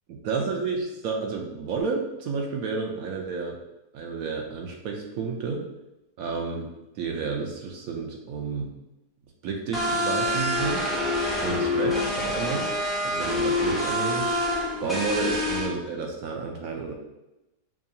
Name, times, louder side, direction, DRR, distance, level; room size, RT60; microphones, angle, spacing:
voice 1, 0.2-3.6 3.9-5.7 6.2-8.7 9.4-10.8 11.1-12.7 13.0-14.3 14.8-16.9, right 4 dB, 70° right, 1 dB, 0.9 m, -31 dB
sound 1, 9.7-15.7, left 1 dB, ahead, 0.4 m, -26 dB
5.2 x 2.3 x 2.7 m, 0.95 s
omnidirectional pair, 1.8 m